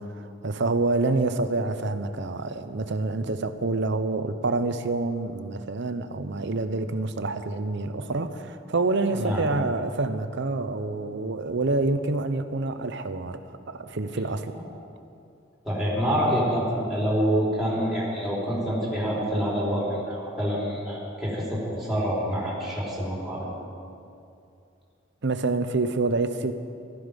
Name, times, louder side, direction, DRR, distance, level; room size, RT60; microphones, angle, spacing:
voice 1, 0.0-14.5 25.2-26.5, right 3 dB, 60° right, 10 dB, 0.8 m, -27 dB
voice 2, 9.1-9.5 15.6-23.5, equal, ahead, -6 dB, 4.0 m, -26 dB
15.0 x 13.5 x 5.3 m, 2.5 s
head